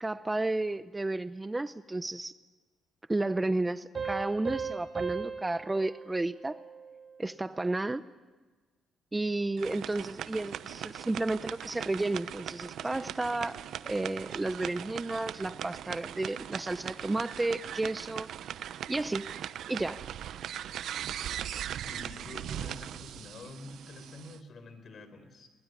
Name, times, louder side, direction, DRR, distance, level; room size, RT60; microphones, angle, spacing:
voice 1, 0.0-2.3 3.1-6.6 7.2-8.0 9.1-13.5 13.8-18.3 18.9-19.3 19.7-20.0, right 2 dB, 15° right, 14 dB, 0.7 m, -32 dB
sound 1, 3.9-7.2, right 6 dB, 35° right, 7.9 m, -38 dB
sound 2, 9.6-24.4, right 10 dB, 75° right, 0.9 m, -40 dB
voice 2, 21.8-25.5, left 2 dB, 50° left, 10 dB, 4.4 m, -47 dB
22.5 x 20.5 x 9.6 m, 1.3 s
cardioid pair, 90°, 0 cm